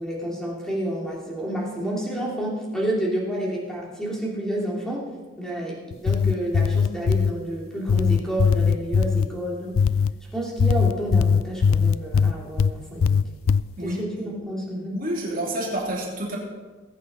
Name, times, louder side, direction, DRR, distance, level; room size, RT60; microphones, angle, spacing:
voice 1, 0.0-5.1 5.4-9.8 10.3-13.2 13.8-15.0, right 1 dB, 5° left, -4 dB, 2.9 m, -29 dB
sound 1, 5.9-7.3 7.9-9.3 9.8-10.1 10.6-12.7 13.0-13.6, left 6 dB, 90° left, 0.4 m, -20 dB
voice 2, 14.9-16.4, right 1 dB, 45° right, -3 dB, 3.0 m, -29 dB
20.0 x 8.3 x 4.2 m, 1.3 s
head